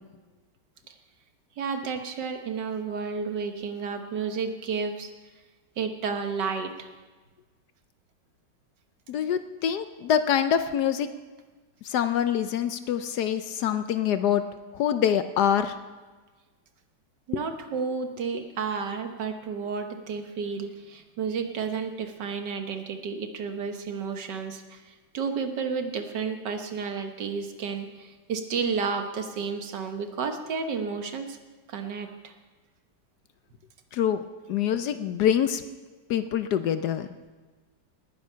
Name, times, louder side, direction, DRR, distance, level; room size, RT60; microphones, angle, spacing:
voice 1, 1.6-5.1 5.8-6.9 17.3-31.4 31.7-32.3, right 5 dB, 70° right, 6 dB, 1.8 m, -31 dB
voice 2, 9.1-11.1 11.9-14.4 14.8-15.7 33.9-34.2 34.5-35.6 36.1-37.1, left 9 dB, 70° left, 10 dB, 1.1 m, -25 dB
19.0 x 9.7 x 5.6 m, 1.3 s
omnidirectional pair, 2.0 m